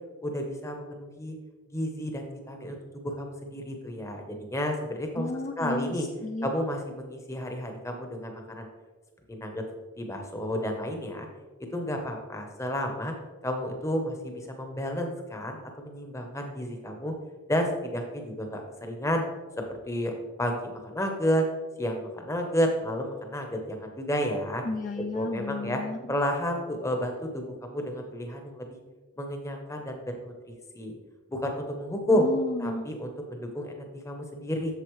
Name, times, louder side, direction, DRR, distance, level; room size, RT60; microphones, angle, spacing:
voice 1, 0.2-1.3 1.7-5.3 5.6-6.0 6.4-8.7 9.3-9.6 10.0-11.3 11.7-13.1 13.4-17.1 17.5-19.2 19.9-20.1 20.4-21.4 21.8-24.6 25.1-25.8 26.1-28.8 29.2-31.0 31.3-32.3 32.6-34.7, equal, 15° left, 3 dB, 0.8 m, -31 dB
voice 2, 5.2-6.5 24.6-26.1 32.1-32.9, left 2 dB, 35° left, 3 dB, 0.4 m, -33 dB
8.2 x 6.9 x 3.1 m, 1.3 s
head